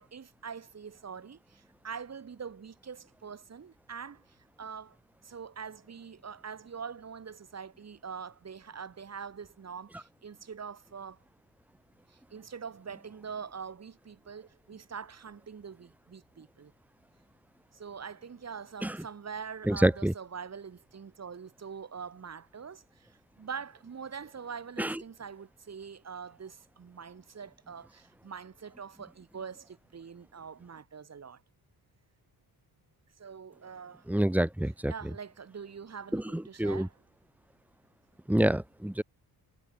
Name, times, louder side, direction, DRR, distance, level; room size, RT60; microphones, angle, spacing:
voice 1, 0.0-5.0 5.2-11.2 12.1-16.7 17.7-31.4 33.2-34.1 34.9-36.9, right 6 dB, 40° right, 7.7 m, -44 dB
voice 2, 19.6-20.1 24.8-25.0 34.1-34.9 36.1-36.9 38.3-39.0, right 1 dB, 5° right, 4.3 m, -27 dB
wide cardioid pair, 150°, 40 cm